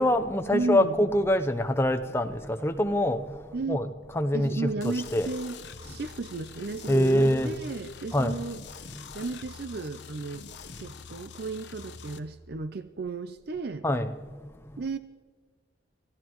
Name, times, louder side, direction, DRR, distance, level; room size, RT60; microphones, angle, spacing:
voice 1, 0.0-5.3 6.9-7.5 8.1-8.4 8.9-9.3 10.8-10.9 13.8-14.8, left 1 dB, 15° left, 7 dB, 0.7 m, -26 dB
voice 2, 0.5-1.0 3.5-3.8 4.3-5.6 5.8-8.6 9.1-10.4 10.8-13.8 14.8-15.0, right 3 dB, 55° right, 11 dB, 0.5 m, -34 dB
sound 1, 4.8-12.2, left 5 dB, 60° left, 0.9 m, -45 dB
28.0 x 15.5 x 3.1 m, 1.5 s
head